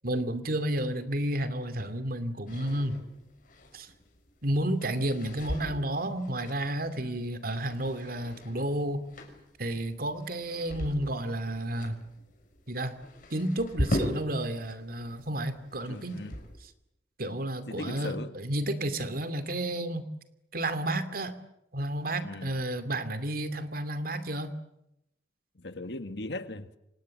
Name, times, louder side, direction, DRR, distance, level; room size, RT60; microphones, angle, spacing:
voice 1, 0.0-3.0 3.7-3.9 4.4-9.1 9.6-12.0 12.7-13.0 13.3-16.3 17.2-20.1 20.5-21.3 21.7-24.5, right 1 dB, 55° right, 2.6 m, -31 dB
sound 1, 2.5-14.8 15.1-16.7, equal, 50° left, 6.2 m, -39 dB
voice 2, 15.9-16.3 17.7-18.3 22.2-22.5 25.6-26.8, left 2 dB, 70° left, 1.9 m, -38 dB
29.5 x 26.0 x 7.8 m
head